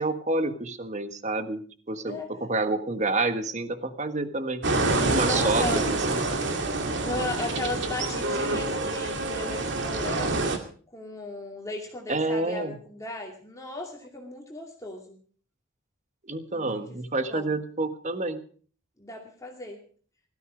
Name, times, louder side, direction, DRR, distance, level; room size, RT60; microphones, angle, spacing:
voice 1, 0.0-4.7 5.1-6.4 12.1-12.7 16.2-18.4, right 2 dB, 35° right, 9 dB, 1.4 m, -29 dB
sound 1, 4.6-10.6, right 2 dB, 65° right, 2.4 m, -27 dB
voice 2, 5.2-5.9 7.0-10.5 10.9-15.2 16.5-17.0 17.3-17.5 19.0-19.8, left 2 dB, 15° left, 1 dB, 2.4 m, -36 dB
18.0 x 13.5 x 5.0 m, 0.44 s
head